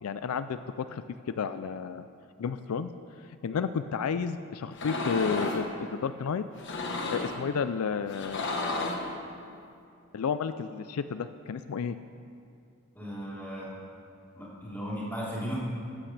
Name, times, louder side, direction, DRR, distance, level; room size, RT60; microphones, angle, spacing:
voice 1, 0.0-1.0 1.4-2.1 2.4-2.9 3.4-6.5 7.1-8.5 10.1-12.0, left 6 dB, 75° left, 12 dB, 0.4 m, -31 dB
sound 1, 4.7-5.7 6.5-7.4 8.1-9.1, left 2 dB, 55° left, 1.3 m, -32 dB
voice 2, 12.9-13.7 14.3-15.6, equal, 10° left, -9 dB, 3.7 m, -36 dB
14.5 x 13.5 x 3.3 m, 2.5 s
head